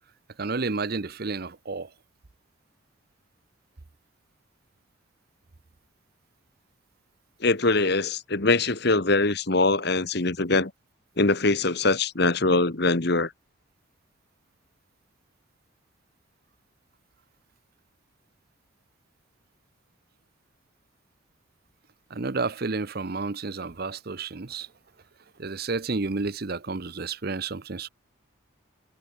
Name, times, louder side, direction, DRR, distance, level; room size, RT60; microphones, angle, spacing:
voice 1, 0.4-1.9 22.1-24.7 25.4-27.9, right 3 dB, 50° right, 0.8 m, -31 dB
voice 2, 7.4-10.7 11.2-13.3, left 3 dB, 50° left, 1.7 m, -23 dB
head